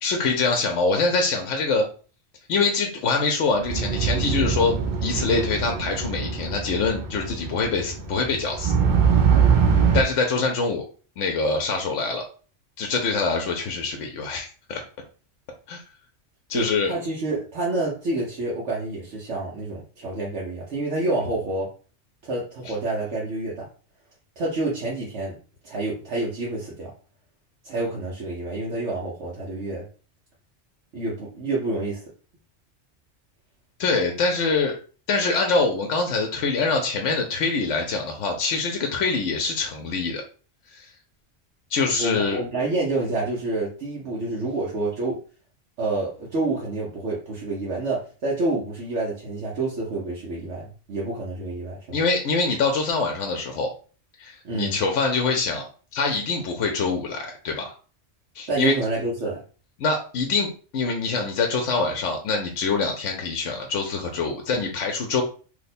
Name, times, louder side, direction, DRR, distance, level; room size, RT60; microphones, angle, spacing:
voice 1, 0.0-1.9 2.5-4.8 5.0-8.7 9.9-10.8 11.2-12.2 12.8-14.8 15.7-15.8 16.5-16.9 22.7-22.8 33.8-34.8 35.1-40.2 40.7-40.9 41.7-42.4 51.9-53.7 54.2-55.7 55.9-57.7 58.4-58.7 59.8-65.2, left 4 dB, 85° left, 3 dB, 1.0 m, -24 dB
sound 1, 3.7-10.0, right 6 dB, 55° right, 0.6 m, -23 dB
voice 2, 9.3-9.7 16.5-21.7 22.2-23.7 24.4-25.4 25.6-26.9 27.6-29.8 30.9-32.0 42.0-45.2 45.8-52.0 54.4-54.8 58.5-59.4, right 2 dB, 75° right, -5 dB, 1.1 m, -28 dB
2.9 x 2.1 x 4.1 m, 0.38 s
omnidirectional pair, 1.2 m